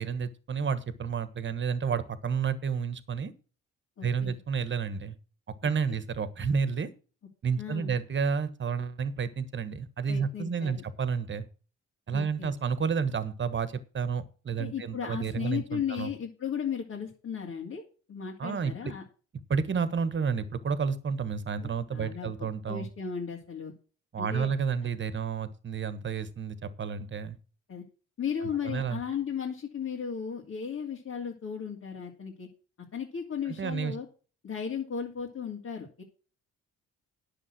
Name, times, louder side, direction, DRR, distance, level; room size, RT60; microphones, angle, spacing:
voice 1, 0.0-3.3 4.0-5.2 5.6-6.9 7.4-11.4 12.1-16.1 18.4-18.9 19.5-22.9 24.1-27.4 28.6-29.0 33.6-33.9, right 6 dB, 40° right, 14 dB, 1.4 m, -30 dB
voice 2, 4.0-4.4 5.6-6.0 7.6-7.9 10.1-10.8 12.1-12.5 14.6-17.8 18.1-19.0 21.6-23.7 24.2-24.5 27.7-27.8 28.2-32.5 32.9-34.1 34.4-36.0, left 7 dB, 50° left, -2 dB, 2.7 m, -35 dB
10.0 x 7.0 x 6.1 m, 0.36 s
cardioid pair, 90°, 30 cm